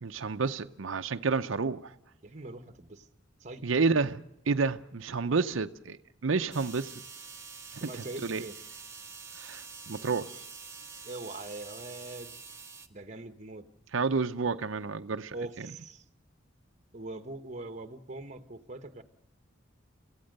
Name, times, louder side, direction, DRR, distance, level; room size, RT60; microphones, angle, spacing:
voice 1, 0.0-1.9 3.6-6.0 6.2-6.9 7.7-7.9 8.2-8.4 9.3-10.4 13.9-15.3, right 4 dB, 80° right, 0.7 m, -30 dB
voice 2, 2.2-3.1 3.4-3.6 7.8-8.6 11.0-12.4 12.9-13.7 15.3-16.0 16.9-19.0, right 2 dB, 35° right, 1.2 m, -42 dB
sound 1, 6.5-12.9, right 5 dB, 15° right, 1.1 m, -46 dB
29.0 x 15.0 x 6.6 m
head